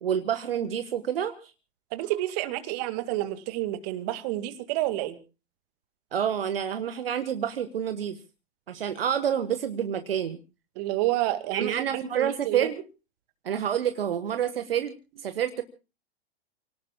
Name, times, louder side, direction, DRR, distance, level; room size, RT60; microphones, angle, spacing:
voice 1, 0.0-1.5 6.1-8.2 8.7-10.4 11.5-12.7 13.4-14.9 15.2-15.6, right 9 dB, 65° right, 9 dB, 1.4 m, -28 dB
voice 2, 1.9-5.2 10.8-12.7, right 15 dB, 40° right, 10 dB, 2.0 m, -29 dB
30.0 x 18.0 x 2.2 m, 0.34 s
figure-of-eight pair, 105°, 32 cm